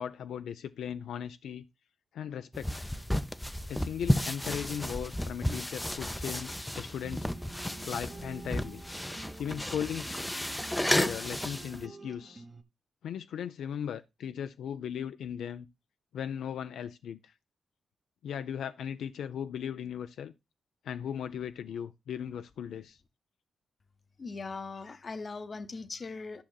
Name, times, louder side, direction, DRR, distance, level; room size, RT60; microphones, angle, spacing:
voice 1, 0.0-1.6 2.1-2.9 3.7-7.3 7.8-8.8 9.4-10.2 10.9-12.4 13.0-15.7 16.1-17.3 18.2-20.3 20.8-23.0, left 8 dB, 85° left, 0.4 m, -37 dB
sound 1, 2.5-11.8, left 1 dB, 10° left, 0.5 m, -33 dB
sound 2, 7.0-12.6, right 3 dB, 35° right, 0.9 m, -49 dB
voice 2, 24.2-26.4, left 4 dB, 40° left, 0.8 m, -40 dB
11.5 x 5.9 x 2.2 m
cardioid pair, 80°, 0 cm